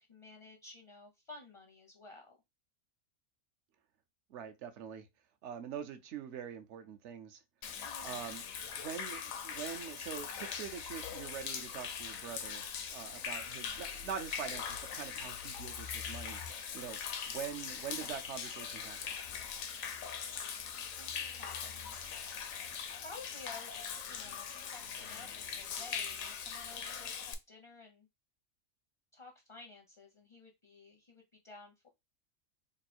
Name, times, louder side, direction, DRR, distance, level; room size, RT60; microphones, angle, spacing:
voice 1, 0.0-2.4 7.8-8.3 13.5-13.8 21.0-22.0 23.0-28.1 29.1-31.9, left 3 dB, 40° left, 0.5 m, -53 dB
voice 2, 4.3-5.1 5.4-7.4 8.0-8.4 8.8-17.0 17.3-19.1, right 8 dB, 65° right, 0.9 m, -44 dB
Human voice / Rain / Stream, 7.6-27.3, left 7 dB, 80° left, 1.0 m, -41 dB
3.1 x 2.4 x 4.2 m
omnidirectional pair, 1.4 m